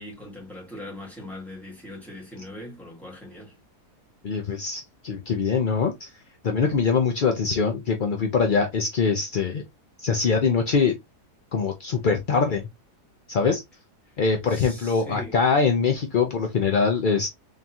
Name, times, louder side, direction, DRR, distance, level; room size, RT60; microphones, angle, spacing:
voice 1, 0.0-3.5 14.1-14.2 14.5-15.4, left 1 dB, ahead, 1.9 m, -40 dB
voice 2, 4.2-6.1 6.4-9.6 10.0-10.9 11.5-12.7 13.3-13.6 14.2-17.3, left 5 dB, 60° left, 0.5 m, -23 dB
3.9 x 3.6 x 2.8 m
omnidirectional pair, 1.7 m